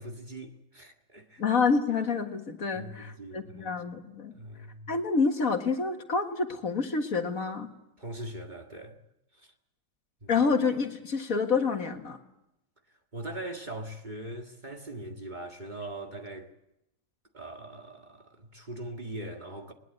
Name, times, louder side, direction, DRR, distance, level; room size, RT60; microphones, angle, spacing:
voice 1, 0.0-1.4 2.7-4.0 4.3-4.9 8.0-9.0 9.3-9.5 10.2-10.4 13.1-16.5 17.3-19.7, right 1 dB, 30° right, 1.8 m, -41 dB
voice 2, 1.4-4.3 4.9-7.7 10.3-12.2, left 4 dB, 60° left, 2.1 m, -28 dB
21.0 x 20.5 x 8.1 m
omnidirectional pair, 1.7 m